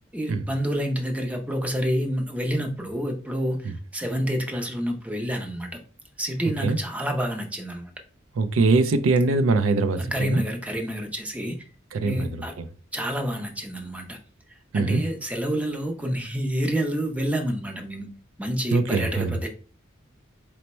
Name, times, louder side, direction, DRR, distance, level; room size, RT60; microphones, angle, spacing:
voice 1, 0.1-5.8 6.2-7.9 10.0-11.6 12.0-12.5 12.9-14.2 14.7-18.1 18.4-19.5, equal, 5° right, 0.6 m, -28 dB
voice 2, 8.4-10.4 11.9-12.7 14.7-15.0 18.7-19.4, right 3 dB, 85° right, 0.5 m, -22 dB
4.4 x 2.1 x 4.2 m
head